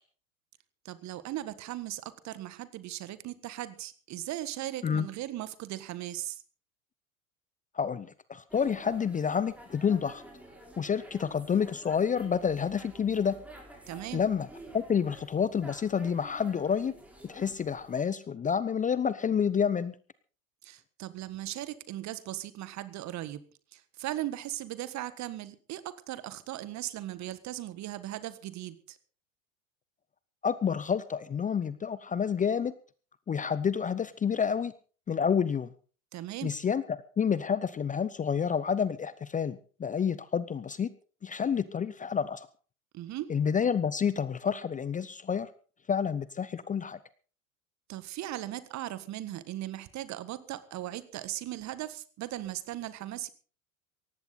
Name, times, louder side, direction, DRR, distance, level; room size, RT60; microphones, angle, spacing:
voice 1, 0.9-6.4 13.9-14.2 20.6-23.4 23.7-29.0 36.1-36.6 42.9-43.3 47.9-53.3, right 14 dB, 40° right, 15 dB, 1.6 m, -38 dB
voice 2, 7.7-10.2 10.8-13.4 14.1-14.5 14.7-16.9 17.2-19.9 30.4-32.7 33.3-34.7 35.1-35.7 36.4-40.9 41.2-42.5 43.3-45.5 45.9-47.0, left 7 dB, 20° left, 17 dB, 0.8 m, -29 dB
sound 1, 8.5-18.0, right 1 dB, 5° right, 5.6 m, -50 dB
18.5 x 15.0 x 4.1 m, 0.39 s
figure-of-eight pair, 80°, 42 cm